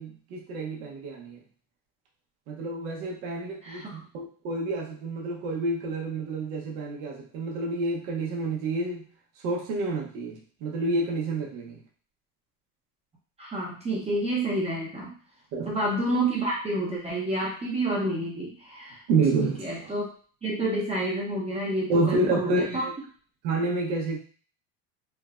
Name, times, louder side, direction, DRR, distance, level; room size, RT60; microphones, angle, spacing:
voice 1, 0.0-1.4 2.5-9.0 9.4-11.8 15.5-15.8 19.1-19.9 21.9-22.9 23.4-24.2, right 2 dB, 85° right, -1 dB, 0.8 m, -29 dB
voice 2, 3.6-4.0 13.4-15.1 15.7-19.0 19.4-20.1 20.4-22.8, right 1 dB, 15° right, -3 dB, 0.5 m, -29 dB
3.3 x 2.0 x 2.3 m, 0.43 s
supercardioid pair, 120°, 39 cm